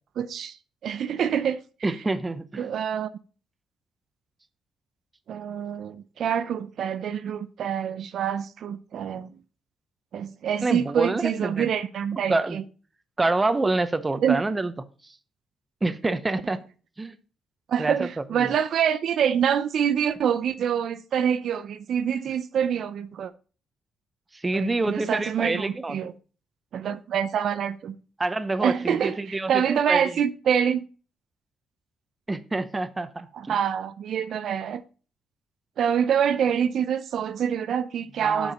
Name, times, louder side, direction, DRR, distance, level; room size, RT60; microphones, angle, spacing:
voice 1, 0.2-0.6 0.8-1.6 2.6-3.1 5.3-9.3 10.1-12.6 14.2-14.4 17.7-23.3 24.5-26.1 26.7-27.9 28.6-30.8 33.3-34.8 35.8-38.5, right 8 dB, 65° right, 0.4 m, -26 dB
voice 2, 1.8-2.7 10.6-11.7 12.1-12.6 13.2-14.7 15.0-15.1 15.8-16.6 17.0-17.2 17.8-18.5 24.3-26.0 28.2-30.0 32.3-33.6 38.2-38.5, right 2 dB, 20° right, 0.7 m, -27 dB
6.5 x 4.7 x 5.1 m
cardioid pair, 90°, 0 cm